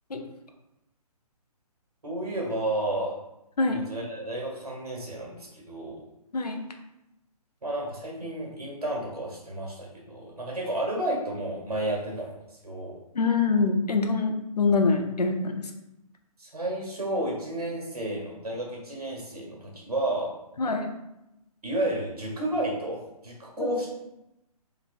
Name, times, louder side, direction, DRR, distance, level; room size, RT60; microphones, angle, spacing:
voice 1, 2.0-3.1 3.7-6.0 7.6-12.9 16.4-20.3 21.6-23.9, right 1 dB, 70° right, -1 dB, 1.2 m, -32 dB
voice 2, 13.1-15.7 20.6-20.9 23.6-23.9, left 4 dB, 85° left, 5 dB, 0.5 m, -25 dB
3.0 x 2.6 x 2.4 m, 0.90 s
figure-of-eight pair, 140°, 20 cm